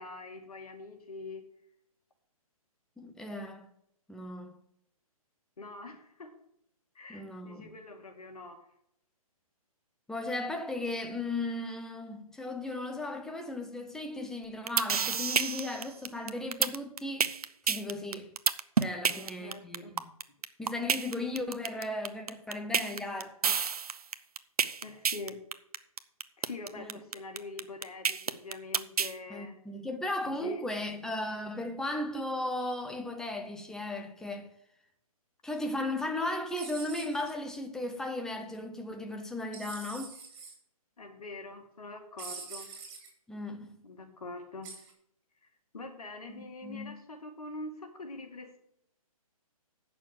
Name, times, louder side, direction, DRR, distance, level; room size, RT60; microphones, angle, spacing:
voice 1, 0.0-1.4 5.6-6.3 6.9-8.6 19.1-20.0 24.8-25.4 26.4-29.6 30.2-30.7 41.0-42.7 43.8-44.7 45.4-45.5 45.7-48.6, left 2 dB, 80° left, 2.3 m, -44 dB
voice 2, 3.0-3.7 4.1-4.6 7.1-7.7 10.1-17.3 17.7-18.3 18.8-19.9 20.6-23.6 26.8-27.0 29.3-34.5 35.4-40.1 43.3-43.8 46.3-46.9, left 2 dB, 5° left, 0.8 m, -36 dB
sound 1, 14.4-29.1, right 6 dB, 80° right, 0.8 m, -29 dB
sound 2, 36.5-37.3 39.5-40.5 42.2-43.1 44.6-44.9, right 5 dB, 30° right, 3.9 m, -44 dB
8.9 x 6.7 x 7.5 m
hypercardioid pair, 145°, 19 cm